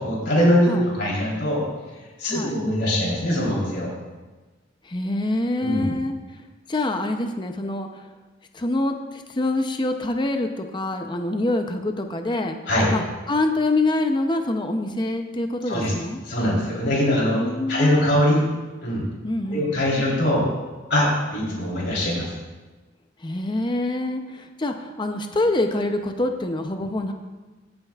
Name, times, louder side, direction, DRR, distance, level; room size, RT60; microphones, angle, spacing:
voice 1, 0.0-1.6 2.2-3.9 5.6-5.9 12.7-12.9 15.7-15.9 16.3-17.4 17.7-18.4 18.8-19.1 19.5-20.4 20.9-22.2, left 1 dB, 65° left, -4 dB, 3.6 m, -22 dB
voice 2, 2.2-2.6 4.8-6.2 6.7-7.9 8.5-12.6 12.9-13.0 13.3-16.2 17.3-18.4 19.2-19.7 23.2-27.1, left 2 dB, 25° left, 5 dB, 0.6 m, -25 dB
17.0 x 8.8 x 2.4 m, 1.2 s
head